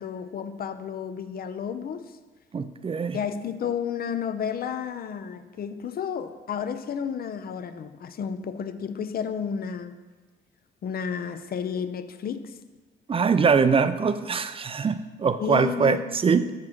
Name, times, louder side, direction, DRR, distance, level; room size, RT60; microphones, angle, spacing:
voice 1, 0.0-2.1 3.1-9.9 10.8-12.6 15.4-16.0 16.4-16.5, left 7 dB, 50° left, 11 dB, 0.6 m, -32 dB
voice 2, 2.5-3.2 13.1-16.4, right 5 dB, 30° right, 11 dB, 0.4 m, -23 dB
7.4 x 6.0 x 4.6 m, 1.3 s
cardioid pair, 90°, 20 cm